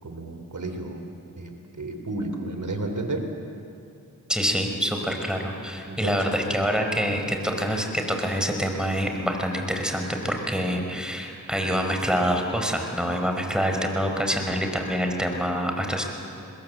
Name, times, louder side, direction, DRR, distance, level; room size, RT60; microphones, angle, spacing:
voice 1, 0.0-3.3 5.9-6.3 7.2-7.3, right 2 dB, 55° right, 5 dB, 3.6 m, -32 dB
voice 2, 4.3-16.0, equal, ahead, 3 dB, 5.1 m, -26 dB
26.0 x 21.0 x 8.0 m, 2.7 s
cardioid pair, 40°, 35 cm